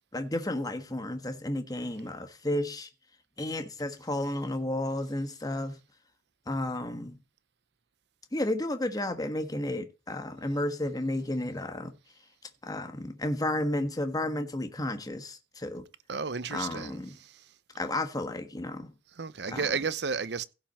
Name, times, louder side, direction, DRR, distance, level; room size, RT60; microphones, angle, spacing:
voice 1, 0.1-2.9 3.4-5.8 6.5-7.2 8.3-11.9 12.6-15.8 16.5-17.2 17.8-18.9 19.5-19.6, left 1 dB, 20° left, 1.4 m, -32 dB
voice 2, 16.1-17.4 19.2-20.4, right 5 dB, 70° right, 0.8 m, -33 dB
16.5 x 5.8 x 4.3 m
head